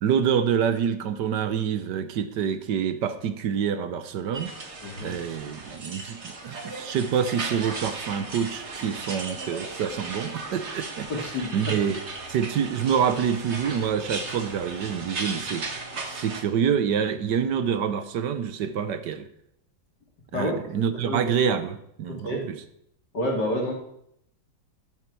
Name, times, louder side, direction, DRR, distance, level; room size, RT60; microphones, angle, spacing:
voice 1, 0.0-4.5 5.0-11.1 11.5-12.0 12.3-15.6 16.1-19.3 20.3-22.5, right 7 dB, 70° right, 11 dB, 1.4 m, -26 dB
sound 1, 4.3-16.4, right 3 dB, 40° right, 1.8 m, -36 dB
voice 2, 4.8-5.2 11.1-11.8 20.3-20.5 20.9-21.2 22.1-22.5 23.1-23.7, left 1 dB, 65° left, 0 dB, 3.4 m, -29 dB
sound 2, 12.1-17.5, equal, 15° right, 2.8 m, -51 dB
13.5 x 11.0 x 4.6 m, 0.74 s
omnidirectional pair, 2.0 m